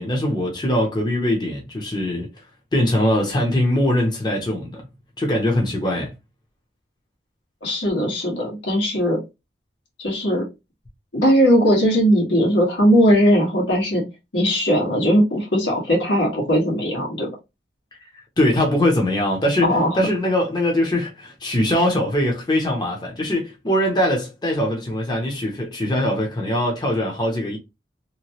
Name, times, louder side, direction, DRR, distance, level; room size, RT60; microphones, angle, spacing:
voice 1, 0.0-2.3 2.7-4.8 5.2-6.1 18.4-27.6, left 1 dB, 25° left, 0.7 m, -22 dB
voice 2, 7.6-9.2 10.0-10.4 11.1-14.0 14.3-17.3 19.6-20.0, equal, 90° left, 1.4 m, -19 dB
2.9 x 2.2 x 2.8 m
head